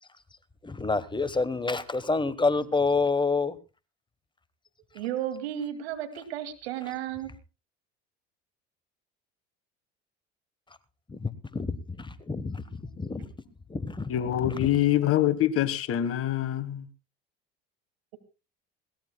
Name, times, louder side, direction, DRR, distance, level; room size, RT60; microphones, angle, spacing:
voice 1, 0.6-3.6 11.1-12.6 13.0-13.3 13.7-14.1 14.4-14.7, left 3 dB, 15° left, 15 dB, 1.2 m, -28 dB
voice 2, 4.9-7.3, right 11 dB, 80° right, 9 dB, 2.4 m, -33 dB
voice 3, 14.1-16.9, left 12 dB, 45° left, 15 dB, 1.4 m, -25 dB
21.0 x 17.0 x 2.2 m, 0.29 s
hypercardioid pair, 75°, 31 cm